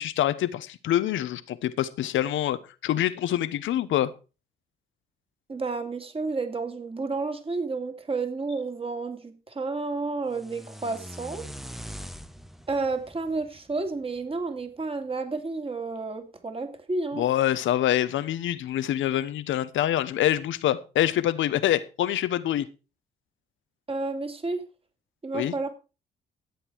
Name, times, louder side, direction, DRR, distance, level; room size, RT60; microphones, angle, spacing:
voice 1, 0.0-4.1 17.1-22.7 25.3-25.5, left 12 dB, 80° left, 1.0 m, -25 dB
voice 2, 5.5-11.4 12.7-17.2 23.9-24.6 25.2-25.7, right 3 dB, 30° right, 2.6 m, -31 dB
sound 1, 10.3-14.4, equal, ahead, 0.9 m, -43 dB
14.0 x 8.2 x 4.6 m
cardioid pair, 90°, 20 cm